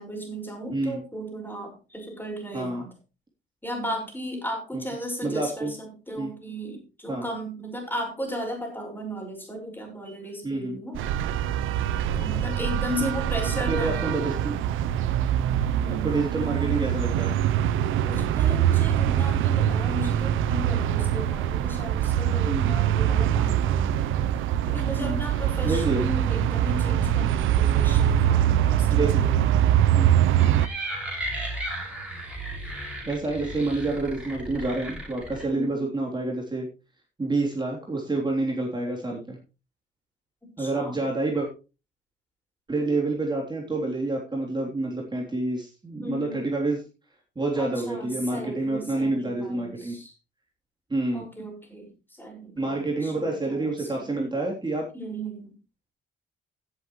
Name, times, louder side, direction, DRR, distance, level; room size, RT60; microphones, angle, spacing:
voice 1, 0.0-2.9 3.6-11.0 12.1-14.1 15.8-16.1 18.0-24.1 24.6-30.2 35.5-35.9 40.4-41.1 46.0-46.5 47.5-50.1 51.1-54.1 54.9-55.6, equal, 10° left, 2 dB, 5.6 m, -36 dB
voice 2, 5.2-5.7 6.2-6.3 7.1-7.3 10.4-10.8 13.0-13.1 13.7-14.6 16.0-17.4 22.5-22.8 25.0-25.2 25.6-26.0 28.9-29.2 29.9-30.1 33.1-36.7 37.2-39.4 40.6-41.5 42.7-46.8 47.4-50.0 50.9-51.2 52.6-54.9, right 2 dB, 20° right, -1 dB, 3.5 m, -28 dB
sound 1, 10.9-30.7, right 11 dB, 85° right, 0.8 m, -23 dB
sound 2, 30.4-35.4, right 1 dB, 5° right, 6.2 m, -35 dB
16.5 x 8.0 x 3.2 m, 0.30 s
cardioid pair, 90°, 20 cm